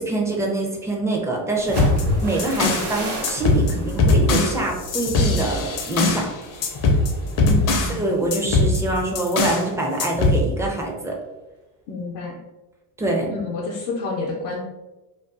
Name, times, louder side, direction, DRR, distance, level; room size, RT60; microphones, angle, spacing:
voice 1, 0.0-1.9 2.2-6.3 7.9-11.2 13.0-13.3, right 2 dB, 5° right, -1 dB, 0.4 m, -24 dB
sound 1, 1.6-9.4 9.8-10.1 10.5-10.9, equal, 55° right, 1.0 m, -33 dB
sound 2, 1.7-2.9 3.2-6.3 6.6-8.0 8.3-9.7 10.0-10.4, left 2 dB, 45° left, 0.5 m, -21 dB
voice 2, 7.4-8.1 11.9-12.4 13.3-14.6, left 3 dB, 85° left, -3 dB, 0.6 m, -29 dB
2.5 x 2.4 x 2.3 m, 1.1 s
supercardioid pair, 85°, 47 cm